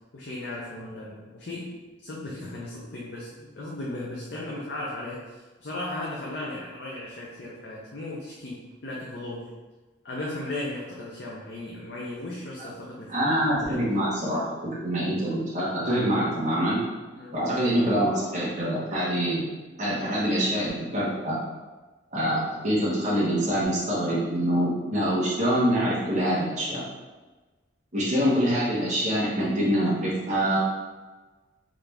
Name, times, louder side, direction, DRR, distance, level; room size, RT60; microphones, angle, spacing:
voice 1, 0.1-9.5 10.0-13.2 13.7-13.9 17.1-17.3, left 1 dB, 60° left, -4 dB, 0.6 m, -36 dB
voice 2, 13.1-16.8 17.3-19.4 19.8-21.4 22.1-26.8 27.9-30.6, equal, 40° right, -8 dB, 1.3 m, -25 dB
3.8 x 3.3 x 3.4 m, 1.3 s
head